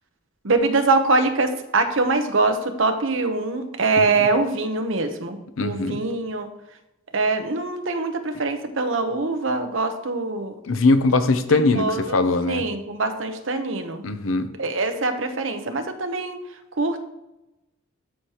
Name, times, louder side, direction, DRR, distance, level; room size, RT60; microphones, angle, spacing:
voice 1, 0.4-6.5 7.1-10.6 11.7-14.0 14.6-16.4 16.8-17.0, right 3 dB, 70° right, 6 dB, 0.9 m, -23 dB
voice 2, 5.6-6.0 10.7-12.6 14.0-14.5, left 3 dB, 80° left, 10 dB, 0.7 m, -21 dB
12.5 x 4.8 x 3.0 m, 0.96 s
head